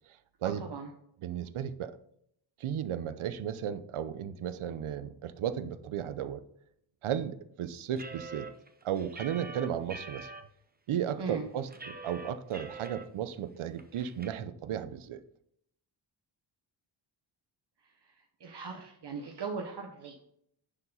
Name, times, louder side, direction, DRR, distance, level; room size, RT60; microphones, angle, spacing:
voice 1, 0.4-0.9 11.2-11.5 18.0-20.2, right 4 dB, 55° right, 3 dB, 1.2 m, -39 dB
voice 2, 1.2-1.9 2.6-6.4 7.0-8.5 8.8-10.3 10.9-15.2, right 9 dB, 90° right, 13 dB, 0.8 m, -34 dB
sound 1, 8.0-10.4 10.9-11.0 11.3-13.0 13.4-13.5 13.8-14.3, right 3 dB, 20° right, 0.9 m, -44 dB
10.0 x 4.7 x 5.5 m, 0.71 s
cardioid pair, 90°, 48 cm